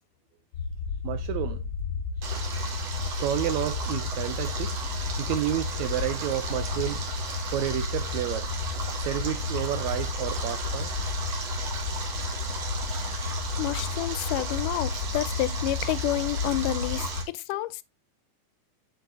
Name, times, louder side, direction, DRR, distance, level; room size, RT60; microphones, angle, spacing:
sound 1, 0.5-17.2, left 4 dB, 45° left, 1.8 m, -32 dB
voice 1, 1.0-1.6 2.4-2.6 3.1-8.5 9.0-11.0, right 13 dB, 80° right, 1.6 m, -31 dB
Stream, 2.2-17.2, right 5 dB, 55° right, 2.4 m, -36 dB
voice 2, 13.6-17.8, left 16 dB, 85° left, 2.1 m, -29 dB
7.9 x 6.3 x 2.5 m
omnidirectional pair, 3.7 m